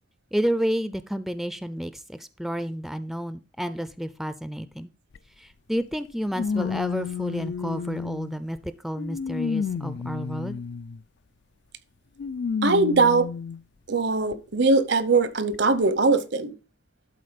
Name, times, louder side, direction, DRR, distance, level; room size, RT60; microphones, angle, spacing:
voice 1, 0.3-4.9 5.4-10.6, equal, ahead, 0.4 m, -30 dB
sound 1, 5.1-5.2 6.3-8.4 9.0-11.0 12.2-13.6 14.3-14.4 15.5-15.6, left 6 dB, 70° left, 0.4 m, -31 dB
voice 2, 12.6-13.3 13.9-16.5, right 3 dB, 70° right, 0.8 m, -21 dB
11.5 x 4.1 x 5.1 m
head